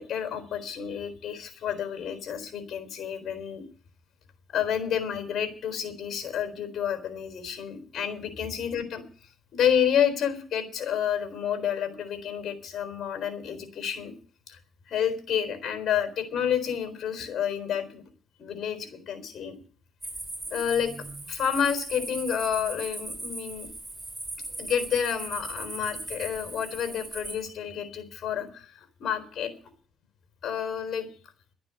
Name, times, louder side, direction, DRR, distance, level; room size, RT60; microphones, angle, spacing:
voice 1, 0.0-3.6 4.5-9.0 9.5-14.1 14.5-14.6 14.9-18.0 18.4-19.6 20.5-20.9 21.3-23.7 24.6-29.5 30.4-31.1, left 8 dB, 65° left, 8 dB, 4.0 m, -29 dB
sound 1, 20.0-27.4, right 2 dB, 10° right, 6.6 m, -38 dB
12.0 x 9.5 x 8.3 m, 0.43 s
cardioid pair, 90°, 0 cm